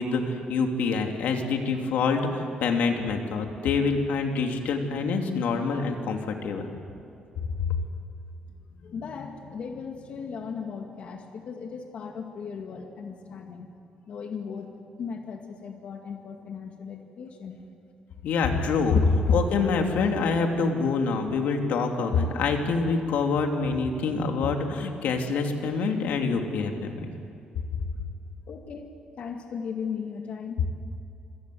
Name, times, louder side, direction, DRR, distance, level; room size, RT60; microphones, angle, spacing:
voice 1, 0.0-6.7 7.7-7.8 18.2-27.1, left 4 dB, 90° left, 3 dB, 3.0 m, -26 dB
voice 2, 8.5-13.7 14.1-17.6 28.5-28.9 29.2-30.7, left 6 dB, 55° left, 3 dB, 2.2 m, -37 dB
26.5 x 26.5 x 7.9 m, 2.7 s
cardioid pair, 160°, 3 cm